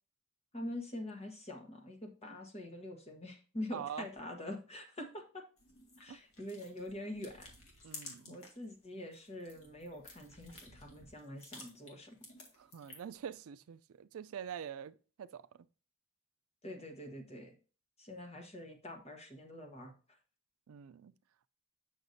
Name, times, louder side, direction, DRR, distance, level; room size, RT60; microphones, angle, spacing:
voice 1, 0.5-5.4 6.0-7.5 8.3-12.2 16.6-17.5 18.0-19.9, left 1 dB, 30° left, 1.4 m, -45 dB
voice 2, 3.7-4.1 6.1-6.2 7.8-8.4 12.6-15.7 20.7-21.1, right 8 dB, 70° right, 0.4 m, -45 dB
sound 1, 5.6-8.6 9.0-13.2, left 2 dB, 80° left, 1.9 m, -54 dB
8.0 x 5.9 x 2.7 m
head